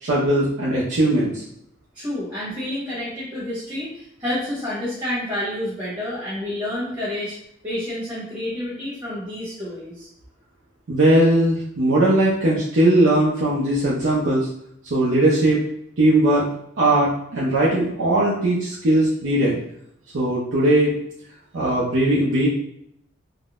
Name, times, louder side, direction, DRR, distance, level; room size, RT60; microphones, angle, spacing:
voice 1, 0.0-1.4 10.9-14.5 14.9-15.6 16.0-16.5 16.8-19.6 20.1-20.9 21.5-22.5, right 1 dB, 70° right, -7 dB, 0.6 m, -19 dB
voice 2, 1.9-7.4 7.6-10.1, left 1 dB, 25° right, -10 dB, 1.1 m, -29 dB
3.6 x 2.0 x 2.4 m, 0.72 s
head